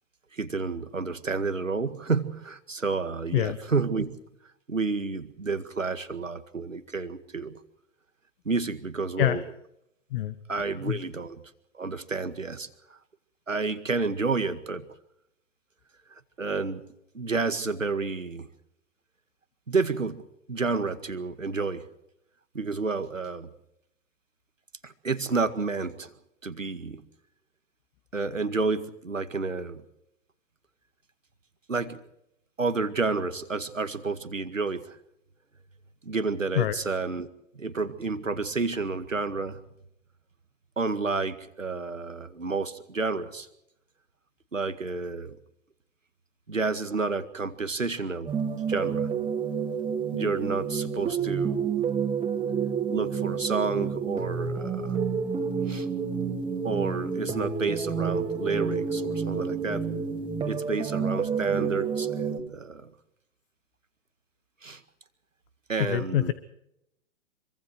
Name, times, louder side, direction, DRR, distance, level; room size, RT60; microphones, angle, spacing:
voice 1, 0.3-4.2 4.7-7.6 8.5-9.4 10.5-11.4 11.7-12.7 13.5-14.9 16.1-16.8 17.1-18.5 19.7-20.2 20.5-21.9 22.5-23.5 24.8-26.1 26.4-27.0 28.1-29.8 31.7-32.0 32.6-35.0 36.0-37.3 37.6-39.6 40.8-43.5 44.5-45.4 46.5-48.3 48.7-49.1 50.1-51.7 52.9-55.0 55.7-55.9 56.6-59.9 60.4-62.9 64.6-64.8 65.7-66.3, right 4 dB, 90° right, 11 dB, 2.0 m, -30 dB
sound 1, 48.3-62.4, right 6 dB, 10° right, 2.7 m, -29 dB
voice 2, 65.7-66.3, left 13 dB, 45° left, 14 dB, 1.4 m, -25 dB
26.0 x 24.0 x 4.7 m, 0.80 s
figure-of-eight pair, 115°, 38 cm